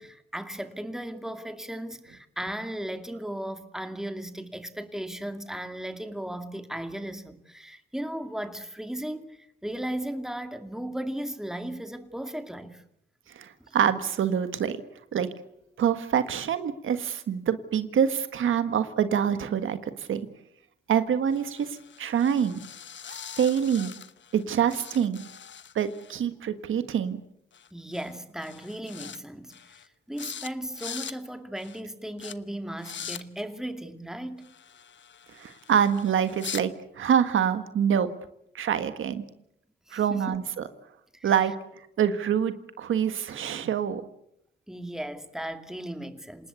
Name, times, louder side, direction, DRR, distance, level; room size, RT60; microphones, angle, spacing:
voice 1, 0.0-12.8 13.6-13.7 27.7-29.8 30.1-34.5 39.9-40.4 41.1-41.3 44.7-46.5, right 1 dB, ahead, 2.4 m, -36 dB
voice 2, 13.3-14.8 15.1-15.3 15.8-20.3 20.9-22.6 23.1-23.9 24.3-25.2 25.7-27.2 35.3-38.1 38.5-39.3 39.9-40.4 41.2-41.5 42.0-44.0, right 8 dB, 90° right, 1.6 m, -26 dB
sound 1, 21.3-24.4 24.7-26.2 27.5-27.7 27.9-28.2 28.4-29.2 29.5-29.9 30.2-30.5 30.7-31.2 31.6-31.8 32.2-32.3 32.8-33.2 34.4-36.6, left 8 dB, 65° left, 1.1 m, -42 dB
27.0 x 19.0 x 8.3 m
cardioid pair, 80°, 20 cm